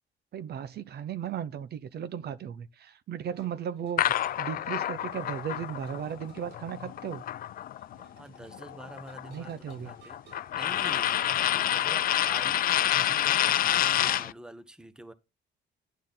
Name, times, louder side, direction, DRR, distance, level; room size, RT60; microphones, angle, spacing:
voice 1, 0.3-7.2 9.3-9.9 11.9-12.0 12.9-13.2, right 8 dB, 60° right, 0.8 m, -36 dB
sound 1, 3.3-14.3, right 4 dB, 85° right, 5.3 m, -56 dB
sound 2, 4.0-8.0 8.4-14.3, left 12 dB, 50° left, 0.4 m, -28 dB
voice 2, 8.2-11.1 11.5-15.1, right 1 dB, 5° right, 1.0 m, -47 dB
10.5 x 6.4 x 4.0 m
cardioid pair, 120°, 19 cm